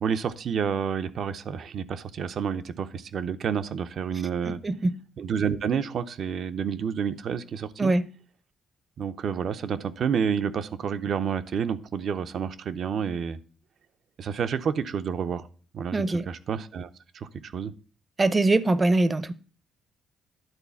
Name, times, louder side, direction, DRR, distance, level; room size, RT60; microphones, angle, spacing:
voice 1, 0.0-4.6 5.2-7.9 9.0-13.4 14.2-15.5 15.7-16.9 17.1-17.7, right 7 dB, 60° right, 0.7 m, -29 dB
voice 2, 4.5-4.9 7.8-8.0 15.9-16.3 18.2-19.3, right 2 dB, 25° right, 0.7 m, -23 dB
11.0 x 4.0 x 7.0 m
cardioid pair, 90°, 0 cm